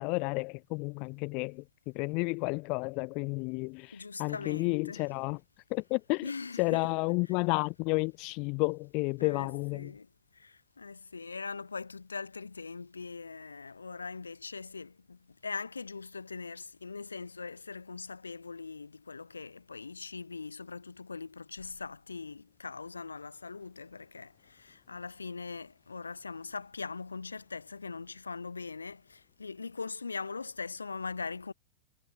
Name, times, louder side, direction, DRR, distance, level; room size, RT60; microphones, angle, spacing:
voice 1, 0.0-5.4 5.7-6.3 6.6-9.9, left 30 dB, 45° left, 0.4 m, -31 dB
voice 2, 3.9-5.1 6.2-6.9 9.2-10.1 10.3-31.5, left 4 dB, 75° left, 0.9 m, -41 dB
figure-of-eight pair, 90°, 0 cm